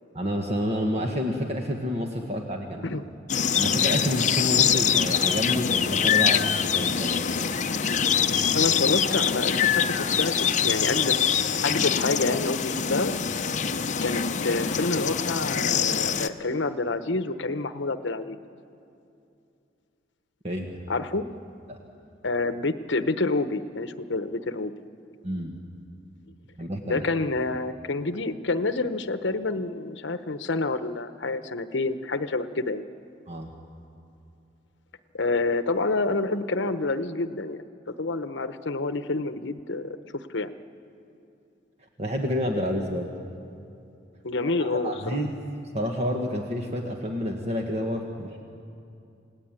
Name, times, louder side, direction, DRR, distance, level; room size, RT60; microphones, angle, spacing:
voice 1, 0.1-2.9 3.5-7.2 20.4-20.8 21.7-21.8 25.2-25.5 26.6-27.0 33.3-33.5 42.0-43.1 44.6-45.3 45.7-48.4, equal, 35° right, 2 dB, 1.6 m, -29 dB
sound 1, 3.3-16.3, left 7 dB, 40° left, 0.7 m, -24 dB
sound 2, 7.8-12.0, left 3 dB, 15° right, 4.5 m, -50 dB
voice 2, 8.5-11.2 11.6-13.5 14.0-18.4 20.9-21.3 22.2-24.7 26.8-32.8 35.1-37.6 38.0-40.0 40.3-40.5 44.2-45.2, left 3 dB, 70° left, 11 dB, 1.0 m, -28 dB
28.0 x 18.0 x 9.0 m, 2.6 s
head